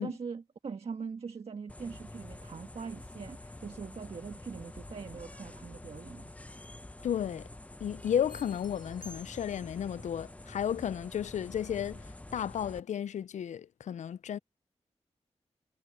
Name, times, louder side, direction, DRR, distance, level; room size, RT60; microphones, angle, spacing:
voice 1, 0.0-6.3, right 5 dB, 60° right, 1.5 m, -42 dB
sound 1, 1.7-12.8, left 1 dB, 10° left, 0.7 m, -47 dB
voice 2, 7.0-7.5 7.8-12.0 12.3-14.4, left 9 dB, 90° left, 0.4 m, -33 dB
sound 2, 8.3-9.9, left 3 dB, 35° left, 0.9 m, -51 dB
wide cardioid pair, 120°, 12 cm